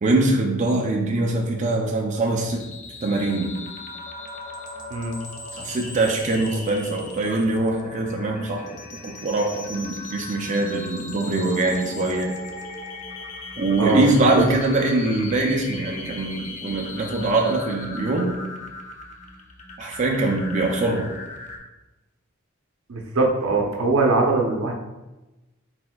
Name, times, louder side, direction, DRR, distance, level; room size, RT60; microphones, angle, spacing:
voice 1, 0.0-2.6 3.0-3.6 5.5-12.3 13.6-18.4 19.8-21.1, right 2 dB, 35° right, 0 dB, 0.4 m, -23 dB
sound 1, 2.4-21.6, left 2 dB, 35° left, 0.5 m, -38 dB
voice 2, 22.9-24.7, right 3 dB, 80° right, 1 dB, 0.7 m, -21 dB
4.4 x 4.2 x 2.3 m, 1.0 s
head